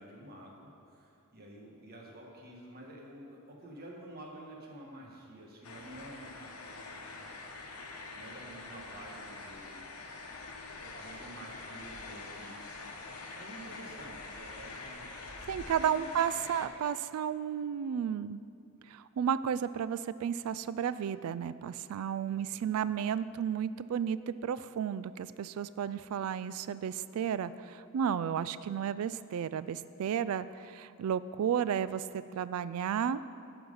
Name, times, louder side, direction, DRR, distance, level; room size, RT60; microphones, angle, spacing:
voice 1, 0.0-7.7 8.1-9.8 10.8-12.9 13.3-15.5 15.9-16.2 22.2-23.1, right 1 dB, 45° right, -1 dB, 1.5 m, -50 dB
sound 1, 5.6-16.7, left 3 dB, 75° left, 1.0 m, -45 dB
voice 2, 15.5-18.4 18.9-33.2, right 8 dB, 70° right, 16 dB, 0.3 m, -33 dB
10.5 x 6.1 x 5.5 m, 2.5 s
head